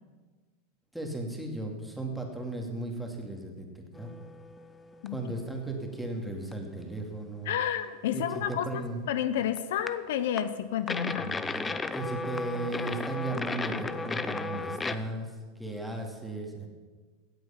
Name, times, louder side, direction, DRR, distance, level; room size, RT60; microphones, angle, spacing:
voice 1, 0.9-4.2 5.1-7.6 8.1-9.0 11.2-16.7, right 2 dB, ahead, 1 dB, 2.4 m, -36 dB
sound 1, 3.9-5.3 5.6-5.7 6.5-6.6 7.0-7.1 8.5-8.6 9.6-9.9 10.4-10.5 10.9-15.0, left 3 dB, 15° left, 0.6 m, -34 dB
voice 2, 7.5-11.4, left 10 dB, 75° left, 12 dB, 0.7 m, -30 dB
16.0 x 8.0 x 5.8 m, 1.4 s
hypercardioid pair, 115°, 0 cm